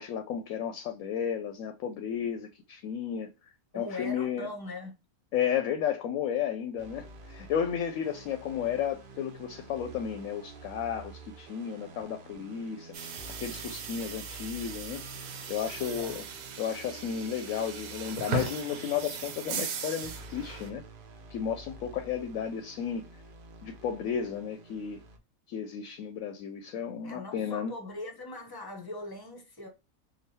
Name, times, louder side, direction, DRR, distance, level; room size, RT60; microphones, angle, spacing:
voice 1, 0.0-3.3 3.7-4.5 5.3-12.9 13.4-15.1 15.5-16.2 16.6-20.8 21.3-23.1 23.6-25.0 25.5-27.7, left 8 dB, 70° left, 0.9 m, -33 dB
voice 2, 3.7-5.0 15.8-16.1 27.0-29.7, left 2 dB, 20° left, 0.6 m, -40 dB
sound 1, 6.8-25.2, right 3 dB, 50° right, 0.7 m, -49 dB
sound 2, 12.9-20.7, right 5 dB, 70° right, 1.1 m, -38 dB
5.0 x 2.3 x 2.7 m
omnidirectional pair, 1.6 m